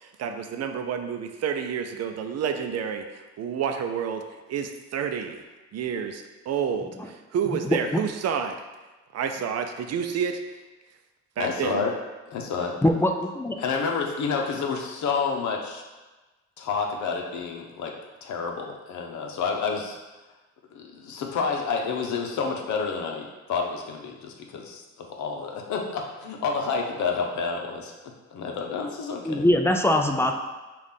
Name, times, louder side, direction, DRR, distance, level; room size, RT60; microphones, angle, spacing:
voice 1, 0.0-8.6 9.1-10.6 11.4-11.9, right 7 dB, 55° right, 6 dB, 0.5 m, -30 dB
voice 2, 7.7-8.0 12.8-13.6 29.3-30.3, left 1 dB, 10° left, 4 dB, 0.4 m, -22 dB
voice 3, 11.4-11.9 12.3-12.7 13.6-15.8 16.6-17.9 18.2-20.0 20.7-27.9 28.3-29.4, left 5 dB, 70° left, 1 dB, 0.8 m, -29 dB
5.6 x 2.5 x 3.6 m, 1.2 s
cardioid pair, 90°, 30 cm